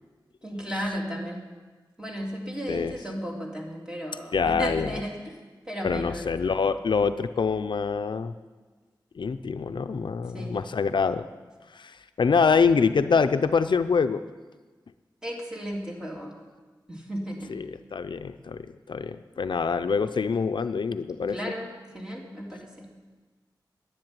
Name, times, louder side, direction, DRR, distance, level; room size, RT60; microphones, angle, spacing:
voice 1, 0.4-1.4 2.0-5.1 5.7-6.3 10.3-10.7 15.2-16.3 16.9-17.5 21.3-21.7 21.9-22.9, equal, 10° right, -2 dB, 3.3 m, -34 dB
voice 2, 4.3-5.0 5.8-8.3 9.2-11.3 11.7-14.2 17.5-21.4, left 5 dB, 80° left, 10 dB, 0.5 m, -25 dB
10.5 x 10.5 x 9.0 m, 1.3 s
wide cardioid pair, 75°, 8 cm